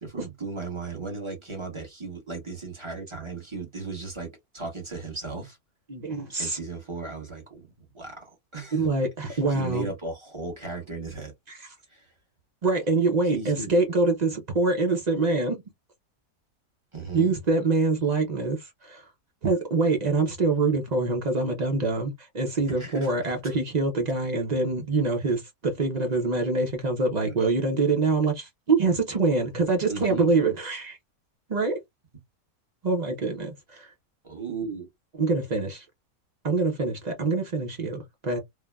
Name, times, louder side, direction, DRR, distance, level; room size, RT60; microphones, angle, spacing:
voice 1, 0.0-5.6 6.4-7.7 7.9-8.8 9.3-11.3 11.9-12.1 13.3-13.8 16.9-17.3 22.7-23.1 23.4-23.5 27.2-27.4 29.9-30.3 34.2-34.9, right 4 dB, 25° right, 0.9 m, -36 dB
voice 2, 5.9-6.6 8.7-9.9 11.5-11.7 12.6-15.6 17.1-19.1 19.4-31.0 31.5-31.8 32.8-33.9 35.1-35.9 36.4-38.4, right 3 dB, 55° right, 0.4 m, -25 dB
3.2 x 2.1 x 2.3 m
omnidirectional pair, 1.7 m